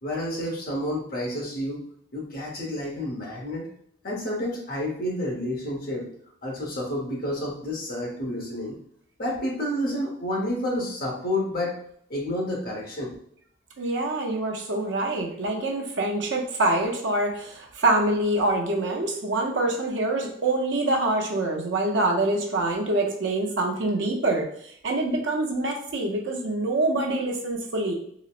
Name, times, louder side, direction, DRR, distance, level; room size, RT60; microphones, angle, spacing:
voice 1, 0.0-1.8 2.1-3.7 4.0-6.1 6.4-8.8 9.2-11.8 12.1-13.1, left 1 dB, 50° left, -2 dB, 1.0 m, -29 dB
voice 2, 13.8-24.5 24.8-27.9, right 2 dB, 70° right, 1 dB, 0.6 m, -25 dB
4.0 x 2.0 x 2.4 m, 0.67 s
head